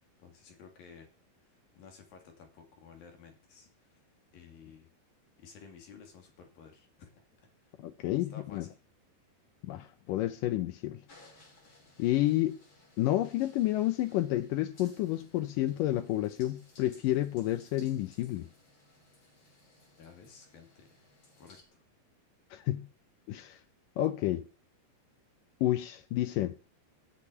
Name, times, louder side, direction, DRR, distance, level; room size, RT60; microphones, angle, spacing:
voice 1, 0.2-1.1 1.5-4.0 4.3-4.9 5.4-7.3 7.6-7.8 8.1-8.7 20.0-21.0 21.4-21.8, left 6 dB, 60° left, 4.2 m, -54 dB
voice 2, 7.8-8.7 9.6-11.0 12.0-12.6 13.0-18.5 22.5-22.9 23.3-23.6 24.0-24.4 25.6-26.5, left 14 dB, 80° left, 2.0 m, -30 dB
sound 1, 11.1-21.6, left 2 dB, 30° left, 3.7 m, -61 dB
14.5 x 6.2 x 9.7 m
omnidirectional pair, 4.7 m